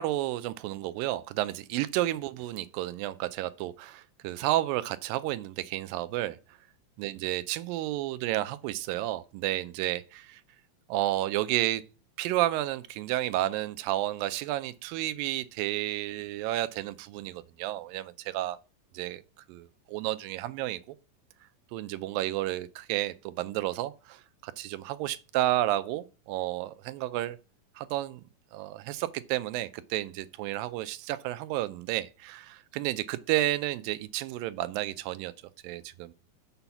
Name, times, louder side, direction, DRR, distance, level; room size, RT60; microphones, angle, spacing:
voice 1, 0.0-6.4 7.0-10.4 10.9-11.8 12.2-18.6 18.9-19.2 19.5-21.0 21.7-27.4 27.8-28.2 28.5-35.3 35.6-36.1, right 15 dB, 80° right, 2.1 m, -31 dB
6.9 x 5.6 x 5.8 m
omnidirectional pair, 4.2 m